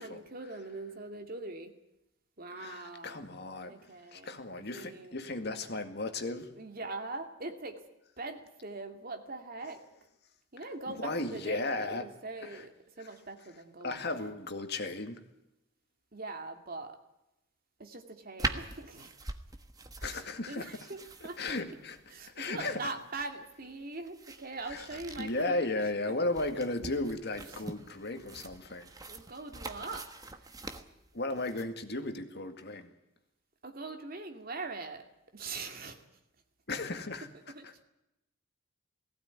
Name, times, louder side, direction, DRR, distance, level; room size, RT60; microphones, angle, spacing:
voice 1, 0.0-1.7 2.4-3.3 3.6-5.2 6.6-7.8 8.2-9.8 10.5-12.7 13.0-14.4 16.1-17.0 17.8-19.1 20.0-21.5 22.1-25.7 27.5-27.6 29.1-30.1 30.4-30.5 33.6-35.0 35.3-36.0 37.5-37.8, right 3 dB, 50° right, 2.4 m, -42 dB
voice 2, 2.5-3.7 4.1-6.5 10.9-12.1 12.4-12.6 13.8-15.2 20.0-20.7 21.2-22.0 22.4-22.8 24.7-24.9 25.2-28.9 31.1-32.9 36.7-37.3, left 2 dB, 55° left, 2.1 m, -35 dB
sound 1, 18.4-31.7, right 2 dB, 20° right, 1.3 m, -43 dB
18.5 x 16.5 x 9.6 m
head